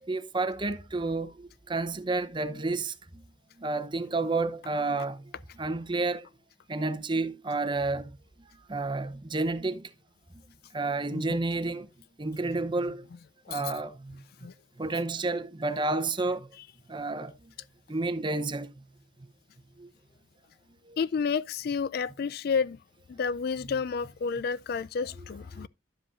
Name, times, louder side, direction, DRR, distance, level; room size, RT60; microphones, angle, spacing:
voice 1, 0.0-3.2 3.6-6.3 6.7-8.2 8.7-9.9 10.7-11.9 12.2-13.1 13.5-14.2 14.8-16.5 16.9-17.5 17.9-18.7 19.8-19.9 20.8-21.0 25.5-25.6, right 3 dB, 25° right, 0.7 m, -30 dB
voice 2, 21.0-22.8 23.1-25.7, left 5 dB, 50° left, 0.3 m, -30 dB
11.0 x 7.8 x 2.4 m
head